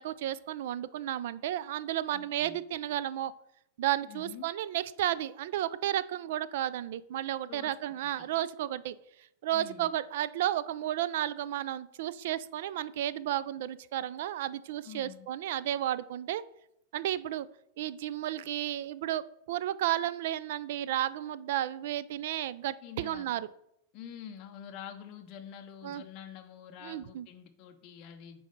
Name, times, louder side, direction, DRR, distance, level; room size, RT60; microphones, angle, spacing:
voice 1, 0.0-3.3 3.8-9.0 9.4-16.4 16.9-17.5 17.8-23.5 25.8-26.0 26.8-27.3, right 12 dB, 60° right, 17 dB, 0.4 m, -33 dB
voice 2, 2.1-2.6 4.1-4.5 7.4-7.8 8.2-8.3 9.5-10.0 14.8-15.3 22.8-23.4 23.9-28.5, left 8 dB, 35° left, 4 dB, 0.7 m, -47 dB
7.1 x 4.2 x 5.2 m, 0.78 s
supercardioid pair, 160°, 0 cm